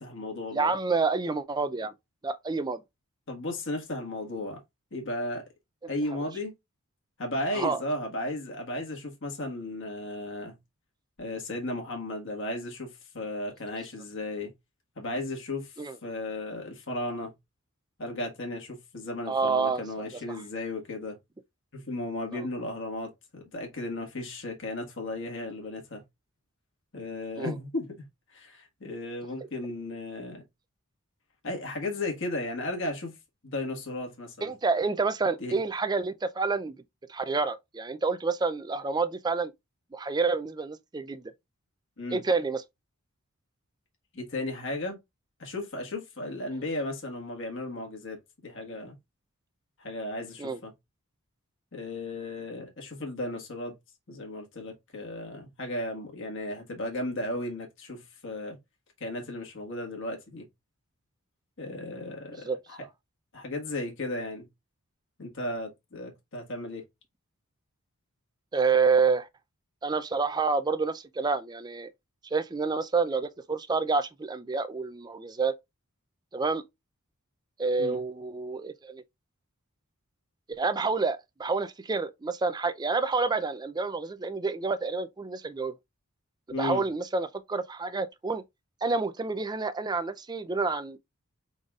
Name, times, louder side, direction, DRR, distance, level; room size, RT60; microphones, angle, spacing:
voice 1, 0.0-0.7 3.3-4.6 4.9-5.4 5.9-6.5 7.2-10.6 11.2-14.5 15.0-17.3 18.0-21.2 21.7-26.0 26.9-27.9 28.3-30.4 31.4-33.1 33.4-34.5 35.4-35.6 42.0-42.2 44.1-45.0 45.4-49.0 49.8-50.7 51.7-53.8 54.1-58.6 59.0-60.5 61.6-62.9 63.3-64.5 65.2-66.8 77.8-78.0 86.5-86.8, left 1 dB, 55° left, 1.7 m, -35 dB
voice 2, 0.5-1.9 2.2-2.8 7.5-7.8 15.8-16.0 19.3-19.8 20.1-20.4 22.3-22.4 27.4-27.6 34.4-36.7 37.1-39.5 39.9-41.3 42.1-42.6 50.4-50.6 62.4-62.6 68.5-69.3 69.8-71.9 72.3-75.5 76.3-76.6 77.6-79.0 80.5-85.7 86.5-88.4 88.8-91.0, right 4 dB, 20° right, 0.4 m, -28 dB
4.9 x 4.0 x 2.4 m
head